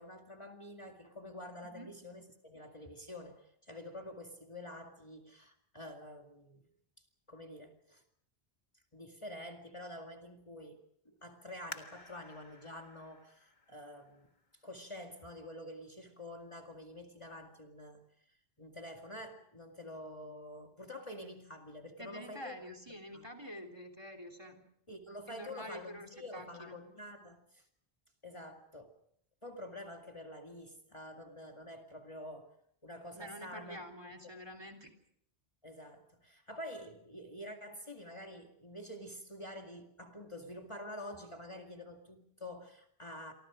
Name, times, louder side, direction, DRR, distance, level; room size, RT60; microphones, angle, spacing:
voice 1, 0.0-6.7 7.3-8.0 8.9-14.3 14.6-22.6 23.1-23.3 24.9-27.7 28.2-28.9 29.4-32.5 32.8-33.8 34.2-34.3 35.6-43.3, left 1 dB, 30° left, 3 dB, 2.2 m, -48 dB
sound 1, 11.7-15.1 15.7-15.8 16.4-16.8 17.2-17.3, left 2 dB, 45° left, 1.8 m, -53 dB
voice 2, 22.0-24.6 25.3-26.8 33.1-34.9, equal, 25° right, 6 dB, 3.2 m, -47 dB
28.5 x 24.5 x 5.0 m, 0.68 s
omnidirectional pair, 1.1 m